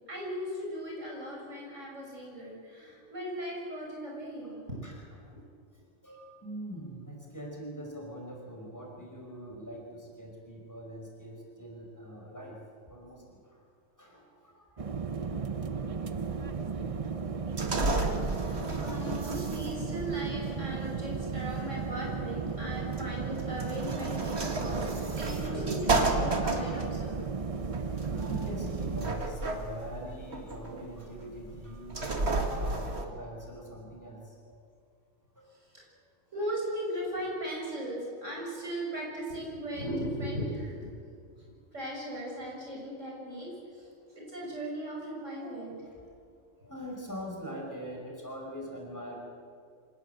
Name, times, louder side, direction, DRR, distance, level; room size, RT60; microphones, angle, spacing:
voice 1, 0.1-4.8 15.8-16.1 18.4-27.2 35.7-35.8 36.3-41.0 41.3-41.4 41.7-43.9 44.2-45.8, equal, 85° right, -2 dB, 7.2 m, -38 dB
voice 2, 6.0-12.6 12.9-13.4 14.0-14.6 15.2-15.3 25.2-26.0 28.1-32.0 32.3-34.2 34.5-34.6 35.4-35.5 45.2-45.4 46.6-49.2, equal, 15° left, -1 dB, 5.2 m, -43 dB
sound 1, 14.8-29.2, right 5 dB, 35° right, 0.7 m, -35 dB
sound 2, 16.1-33.0, right 2 dB, 60° right, 2.3 m, -33 dB
25.5 x 19.0 x 7.9 m, 2.2 s
omnidirectional pair, 1.3 m